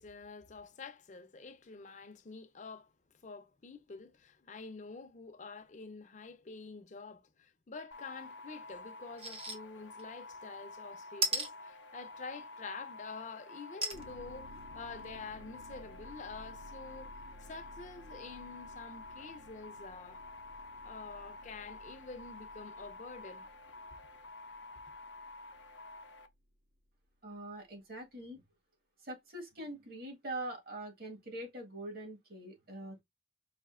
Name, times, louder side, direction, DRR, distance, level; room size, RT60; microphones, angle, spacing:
voice 1, 0.0-2.9 3.2-17.1 17.4-20.2 20.8-23.5, left 4 dB, 45° left, 0.5 m, -48 dB
sound 1, 7.9-26.3, left 2 dB, 90° left, 0.5 m, -50 dB
sound 2, 9.2-9.6 10.0-10.1 11.2-11.5 13.8-14.0 14.6-14.7 15.0-15.1, right 3 dB, 35° right, 0.6 m, -33 dB
sound 3, 13.9-26.0 26.3-26.4, equal, 90° right, 1.2 m, -57 dB
voice 2, 27.2-28.4 29.0-33.0, right 1 dB, 60° right, 1.5 m, -43 dB
5.0 x 2.6 x 2.4 m
head